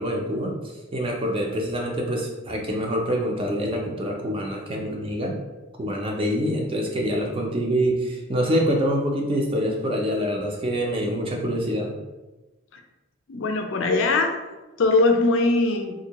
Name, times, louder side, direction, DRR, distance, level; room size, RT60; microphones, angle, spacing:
voice 1, 0.0-5.4 5.8-11.9, equal, 25° right, 0 dB, 0.4 m, -25 dB
voice 2, 13.3-14.3 14.8-15.9, left 3 dB, 70° left, 5 dB, 0.4 m, -21 dB
3.6 x 2.6 x 2.8 m, 1.1 s
head